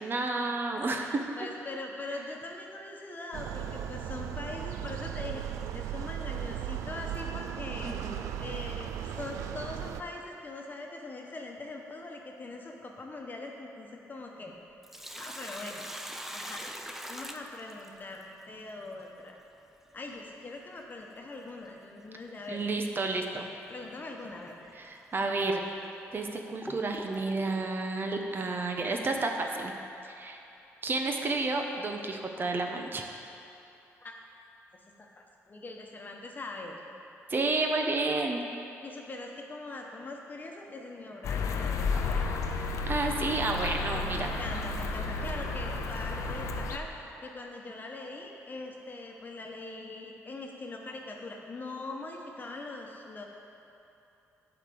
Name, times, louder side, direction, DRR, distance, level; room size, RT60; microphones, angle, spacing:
voice 1, 0.0-1.2 7.8-8.2 22.5-23.5 24.7-25.6 26.1-29.7 30.1-30.4 30.8-33.0 37.3-38.4 42.9-44.3, right 3 dB, 40° right, 3 dB, 0.9 m, -31 dB
voice 2, 0.9-8.0 8.4-14.5 15.2-15.9 16.3-16.7 17.0-19.4 19.9-22.6 23.7-24.5 34.0-34.1 35.5-36.8 38.8-42.3 43.9-46.9 47.2-53.3, left 2 dB, 35° left, 1 dB, 1.1 m, -42 dB
sound 1, 3.3-10.0, right 10 dB, 90° right, 0.3 m, -37 dB
Sink (filling or washing), 14.6-18.2 20.6-20.7 22.6-22.8 23.3-23.4 24.2-24.3 25.0-25.1 25.8-27.7, equal, 5° right, 0.6 m, -42 dB
sound 2, 41.2-46.8, left 3 dB, 75° left, 0.6 m, -32 dB
8.4 x 5.0 x 6.9 m, 2.9 s
cardioid pair, 75°, 5 cm